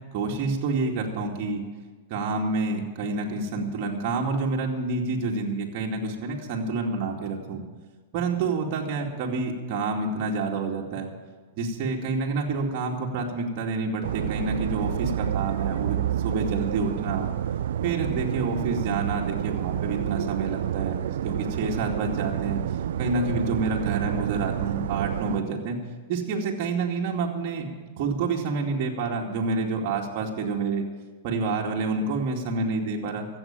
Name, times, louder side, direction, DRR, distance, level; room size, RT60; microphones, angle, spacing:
voice 1, 0.1-1.6 2.1-7.6 8.1-11.1 11.6-16.0 16.2-17.3 17.8-21.0 21.2-22.6 23.0-25.8 26.1-27.7 28.0-30.8 31.2-33.3, right 3 dB, 50° right, -1 dB, 2.4 m, -28 dB
sound 1, 14.0-25.4, right 10 dB, 75° right, 0.4 m, -29 dB
14.0 x 8.3 x 9.1 m, 1.4 s
hypercardioid pair, 120°, 0 cm